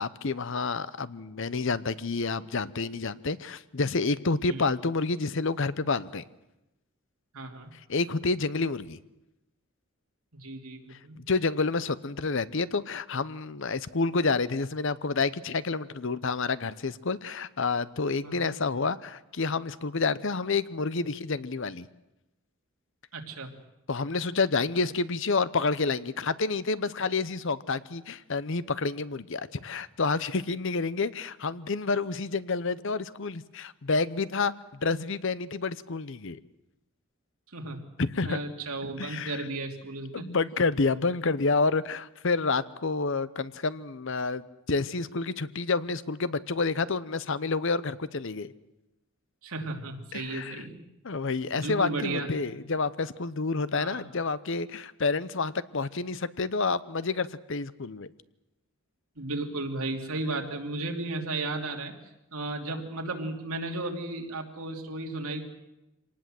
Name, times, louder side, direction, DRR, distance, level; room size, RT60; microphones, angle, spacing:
voice 1, 0.0-6.2 7.9-9.0 10.9-21.9 23.9-34.5 34.8-36.4 38.0-38.4 39.0-39.5 40.1-48.5 50.1-50.6 51.0-58.1, left 4 dB, 55° left, 16 dB, 0.8 m, -29 dB
voice 2, 7.3-7.7 10.3-11.2 18.2-18.5 23.1-23.5 37.5-37.8 38.2-40.3 49.4-50.8 51.5-52.3 53.7-54.1 59.2-61.9 62.3-65.4, right 2 dB, 80° right, 2 dB, 2.9 m, -34 dB
25.0 x 19.0 x 7.7 m, 0.93 s
head